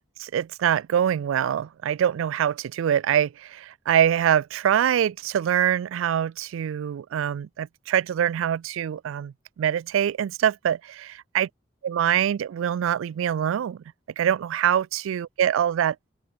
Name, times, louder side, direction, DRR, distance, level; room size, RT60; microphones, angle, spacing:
voice 1, 0.0-11.5 11.8-13.8 14.2-16.1, right 9 dB, 90° right, 0.3 m, -24 dB
open air
head